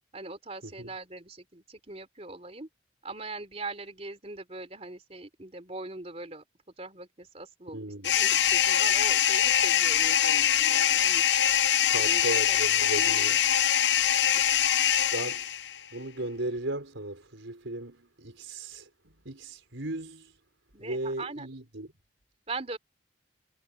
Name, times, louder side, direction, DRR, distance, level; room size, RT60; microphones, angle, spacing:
voice 1, 0.1-2.7 3.0-6.4 6.8-11.2 11.8-12.6 12.9-13.3 14.1-14.2 20.7-21.5 22.5-22.8, right 3 dB, 35° right, 3.5 m, -41 dB
voice 2, 7.7-8.1 11.9-13.4 15.1-15.4 15.9-18.9 19.2-20.3 20.8-21.9, right 2 dB, 90° right, 5.1 m, -36 dB
sound 1, 8.0-15.8, left 10 dB, 65° left, 0.7 m, -23 dB
head